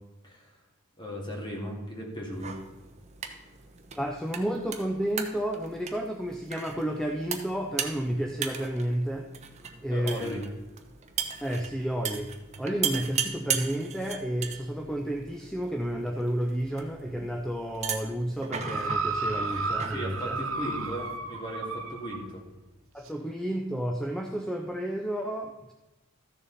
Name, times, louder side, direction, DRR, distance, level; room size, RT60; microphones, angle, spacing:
voice 1, 1.0-2.6 9.9-10.4 19.9-22.4, equal, 20° left, -1 dB, 2.4 m, -37 dB
sound 1, 2.3-21.2, right 7 dB, 35° right, 0.9 m, -38 dB
voice 2, 4.0-9.3 9.8-10.5 11.4-12.3 12.6-20.4 22.9-25.7, right 1 dB, 5° left, 2 dB, 0.6 m, -31 dB
sound 2, 18.6-22.3 23.1-23.2, right 3 dB, 70° right, 1.1 m, -32 dB
14.0 x 6.9 x 4.1 m, 1.0 s
head